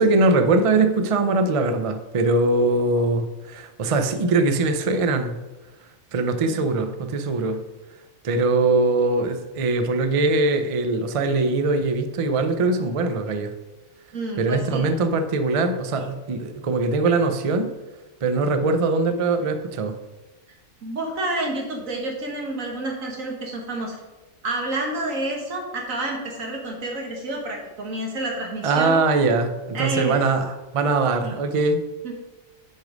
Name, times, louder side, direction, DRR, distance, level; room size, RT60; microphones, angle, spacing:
voice 1, 0.0-5.3 6.1-7.6 8.2-13.5 14.4-17.7 18.2-20.0 28.6-31.9, right 3 dB, 50° right, 8 dB, 0.4 m, -22 dB
voice 2, 14.1-14.9 20.5-24.0 24.4-29.0 29.7-30.2 31.2-31.4 32.0-32.1, right 2 dB, 80° right, 1 dB, 1.9 m, -29 dB
6.3 x 5.2 x 5.1 m, 1.1 s
omnidirectional pair, 1.4 m